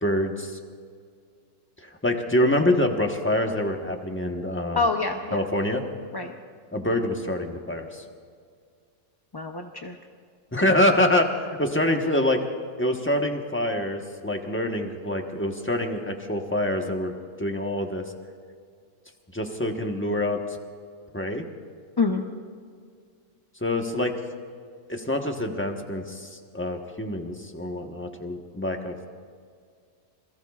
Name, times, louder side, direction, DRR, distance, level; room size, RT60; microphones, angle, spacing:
voice 1, 0.0-0.6 1.8-4.9 5.3-5.8 6.7-8.0 10.5-12.4 12.8-18.0 19.3-20.4 21.1-21.4 23.6-24.2 24.9-29.1, left 1 dB, 10° left, 3 dB, 1.1 m, -26 dB
voice 2, 4.8-5.4 6.1-6.3 9.3-10.0 22.0-22.2, left 4 dB, 25° left, 3 dB, 0.5 m, -26 dB
27.5 x 21.5 x 2.4 m, 2.1 s
omnidirectional pair, 1.5 m